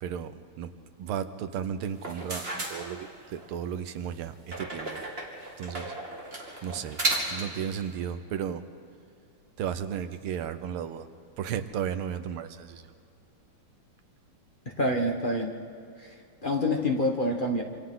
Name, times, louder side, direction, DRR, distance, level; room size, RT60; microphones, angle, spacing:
voice 1, 0.0-0.7 1.0-5.0 5.6-5.9 6.6-7.0 7.3-8.6 9.6-11.1 11.4-12.9, right 8 dB, 85° right, 11 dB, 1.7 m, -34 dB
sound 1, 1.9-3.5 4.5-7.6, right 2 dB, 25° right, 2.7 m, -34 dB
voice 2, 14.8-15.5 16.0-16.1 16.4-17.6, left 1 dB, 25° left, 1 dB, 1.3 m, -26 dB
27.0 x 26.0 x 3.9 m, 2.6 s
omnidirectional pair, 2.3 m